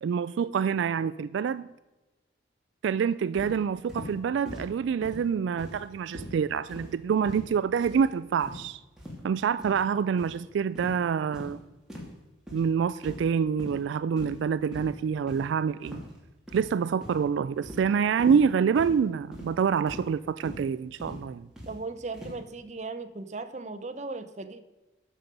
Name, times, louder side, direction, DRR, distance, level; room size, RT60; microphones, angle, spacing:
voice 1, 0.0-1.7 2.8-8.8 9.2-11.6 12.5-16.0 16.5-21.5, right 6 dB, 80° right, 0.3 m, -26 dB
sound 1, 3.3-3.5 3.9-4.1 4.5-4.7 5.0-5.2 5.6-5.9 6.1-6.4 6.7-6.9 7.3-7.5 7.8-8.0 8.4-8.6 9.0-9.2 9.6-9.8 10.2-10.4 10.8-11.0 11.3-11.5 11.9-12.1 12.5-12.7 13.0-13.3 13.6-13.8 14.2-14.4 14.7-14.9 15.3-15.4 15.8-16.1 16.5-16.8 17.0-17.2 17.6-17.8 18.2-18.4 18.8-19.0 19.3-19.5 19.9-20.1 20.4-20.6 21.0-21.2 21.6-21.7 22.1-22.4, equal, 5° right, 2.4 m, -41 dB
voice 2, 21.7-24.6, right 3 dB, 40° right, 0.7 m, -37 dB
11.5 x 6.8 x 5.2 m
head